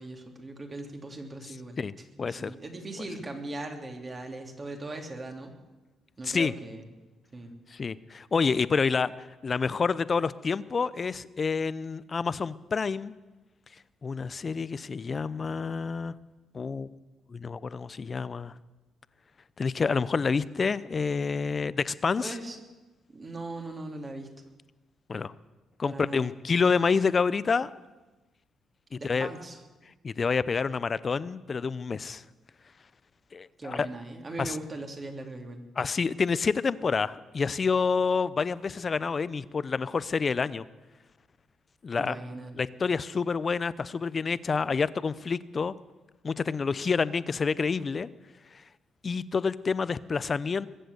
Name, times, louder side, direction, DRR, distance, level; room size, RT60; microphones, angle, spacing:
voice 1, 0.0-1.8 2.3-5.5 6.2-6.8 7.3-7.5 22.2-22.6 23.1-24.3 25.9-26.3 28.9-29.6 33.6-35.6 42.0-42.5, right 2 dB, 30° right, 4 dB, 2.7 m, -39 dB
voice 2, 2.2-2.5 6.2-6.5 7.7-13.1 14.0-16.1 16.5-16.9 17.3-18.5 19.6-22.4 25.1-25.3 25.8-27.7 28.9-29.3 30.0-32.2 33.3-33.9 34.4-34.6 35.8-40.7 41.8-42.2 42.6-45.7 46.2-48.1 49.0-50.7, left 5 dB, 40° left, 18 dB, 0.6 m, -28 dB
21.5 x 7.8 x 8.0 m, 1.1 s
cardioid pair, 90°, 0 cm